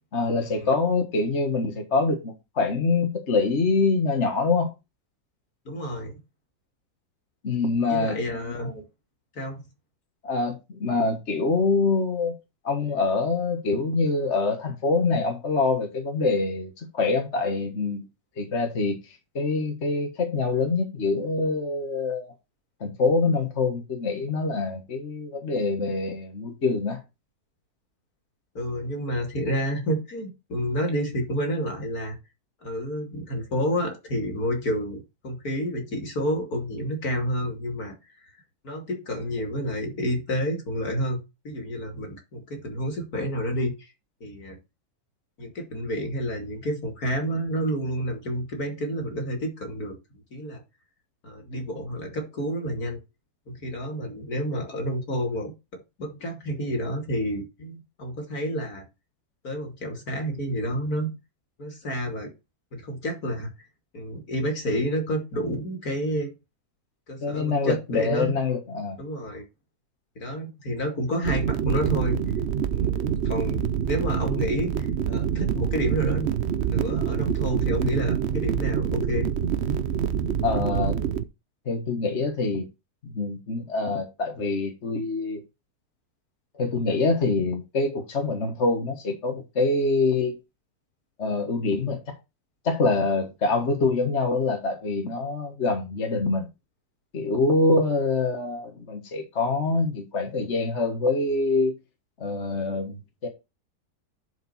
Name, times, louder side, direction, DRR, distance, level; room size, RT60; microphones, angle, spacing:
voice 1, 0.1-4.7 7.4-8.2 10.2-12.4 12.6-18.0 18.4-22.3 22.8-27.0 67.2-69.0 80.4-81.0 81.7-82.7 83.0-85.4 86.5-90.4 91.2-92.1 92.6-96.5 97.1-101.7 102.2-103.3, left 3 dB, 45° left, 1.7 m, -25 dB
voice 2, 5.6-6.1 7.9-8.8 9.3-9.6 28.5-32.2 32.6-37.9 38.6-43.9 44.2-44.6 45.4-50.6 51.2-53.0 53.5-58.9 59.4-61.1 61.6-62.3 62.7-63.5 63.9-66.3 67.1-68.4 69.0-69.4 70.2-72.2 72.7-76.3 76.6-79.3, equal, 65° left, 3.0 m, -29 dB
sound 1, 71.2-81.2, right 8 dB, 55° right, 0.8 m, -26 dB
11.0 x 5.2 x 4.2 m
omnidirectional pair, 1.7 m